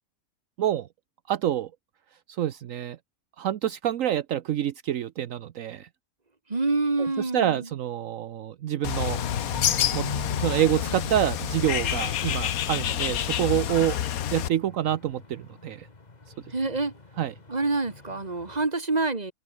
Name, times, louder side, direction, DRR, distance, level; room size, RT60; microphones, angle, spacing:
voice 1, 1.3-1.7 2.3-3.0 3.4-5.9 7.2-9.2 9.9-10.1 10.4-14.0 14.3-15.9 17.2-17.3, right 11 dB, 70° right, 1.1 m, -27 dB
voice 2, 6.5-7.7 16.5-17.0 17.5-19.3, right 3 dB, 30° right, 2.4 m, -27 dB
Bird, 8.8-14.5, left 10 dB, 85° left, 1.4 m, -28 dB
sound 1, 8.9-18.7, left 3 dB, 30° left, 2.0 m, -42 dB
omnidirectional pair, 1.5 m